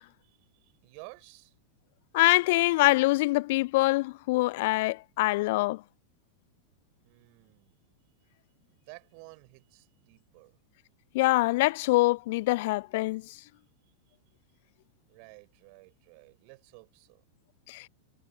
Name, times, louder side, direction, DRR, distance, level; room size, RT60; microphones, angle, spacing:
voice 1, 0.2-1.5 7.0-7.8 8.7-10.6 15.1-17.2, right 40 dB or more, 45° right, 5.5 m, -53 dB
voice 2, 2.1-5.8 11.1-13.2 17.7-17.8, left 20 dB, 50° left, 0.6 m, -24 dB
figure-of-eight pair, 90°, 0 cm